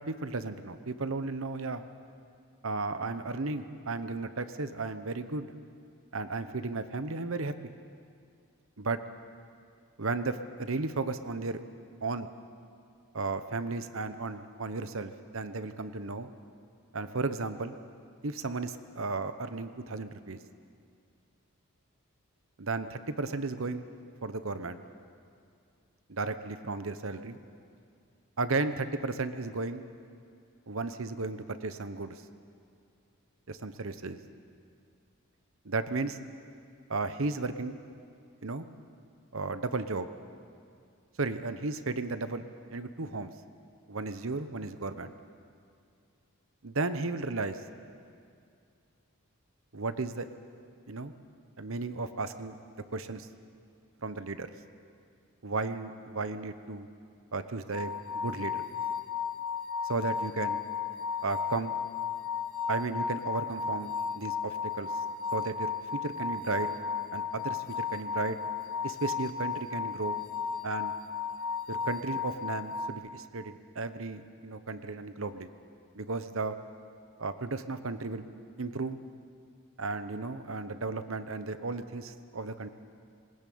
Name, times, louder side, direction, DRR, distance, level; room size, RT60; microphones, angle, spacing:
voice 1, 0.0-1.8 2.6-5.5 6.1-7.7 8.8-9.0 10.0-11.6 12.0-12.3 13.1-16.3 16.9-17.7 18.2-20.4 22.6-23.9 24.2-24.8 26.1-27.4 28.4-29.9 30.7-32.2 33.5-34.2 35.6-36.2 36.9-37.8 38.4-38.7 39.3-40.1 41.2-42.4 42.7-43.3 43.9-45.1 46.6-47.6 49.7-50.3 50.9-51.1 51.6-52.6 52.9-53.3 54.0-54.5 55.4-56.9 57.3-58.6 59.9-60.6 61.2-61.7 62.7-64.9 65.3-66.7 67.1-68.4 68.8-70.2 70.6-70.9 71.7-75.5 75.9-76.5 77.2-78.2 78.6-79.0 79.8-82.7, right 3 dB, 65° right, 11 dB, 1.0 m, -34 dB
sound 1, 57.7-72.9, left 6 dB, 65° left, 1.6 m, -34 dB
20.5 x 19.5 x 8.6 m, 2.4 s
head